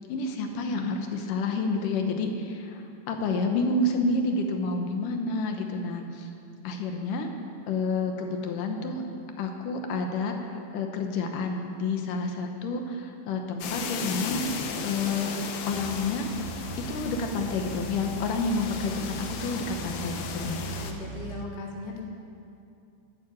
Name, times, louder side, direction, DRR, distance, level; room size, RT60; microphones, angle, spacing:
voice 1, 0.1-6.3 6.6-7.3 7.7-9.0 9.4-14.5 14.8-16.3 16.7-20.6, left 3 dB, 75° left, 4 dB, 2.4 m, -29 dB
sound 1, 13.6-20.9, left 6 dB, 90° left, 2.8 m, -36 dB
sound 2, 15.7-21.5, right 6 dB, 90° right, 2.5 m, -40 dB
voice 2, 20.6-22.0, left 2 dB, 35° left, -1 dB, 0.8 m, -39 dB
12.0 x 9.5 x 8.8 m, 2.6 s
omnidirectional pair, 4.1 m